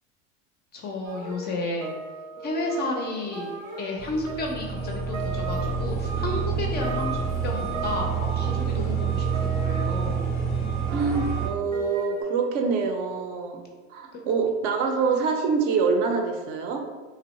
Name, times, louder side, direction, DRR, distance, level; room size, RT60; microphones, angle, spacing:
voice 1, 0.7-2.0 2.4-3.5 3.8-10.3 14.1-14.2, left 2 dB, 30° left, 1 dB, 0.4 m, -32 dB
sound 1, 1.0-10.5 10.9-12.2, right 2 dB, 90° right, 0.7 m, -38 dB
Truck Backing Up, 4.0-11.5, right 6 dB, 5° right, 0.7 m, -28 dB
voice 2, 10.9-13.6 13.9-16.8, right 5 dB, 55° right, 4 dB, 0.5 m, -25 dB
2.7 x 2.0 x 2.9 m, 1.4 s
hypercardioid pair, 95°, 38 cm